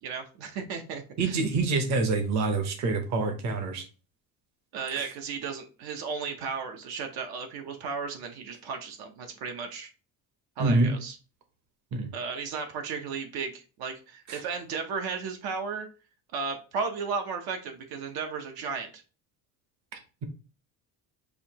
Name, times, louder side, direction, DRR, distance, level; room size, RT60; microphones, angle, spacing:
voice 1, 0.0-1.4 4.7-9.9 10.6-11.2 12.1-15.9 16.3-19.0, right 5 dB, 70° right, 5 dB, 0.9 m, -34 dB
voice 2, 1.2-3.9 5.0-5.1 10.6-10.9 11.9-12.1 14.3-14.4, right 3 dB, 45° right, 5 dB, 1.0 m, -26 dB
6.5 x 2.7 x 2.9 m, 0.34 s
cardioid pair, 175°, 39 cm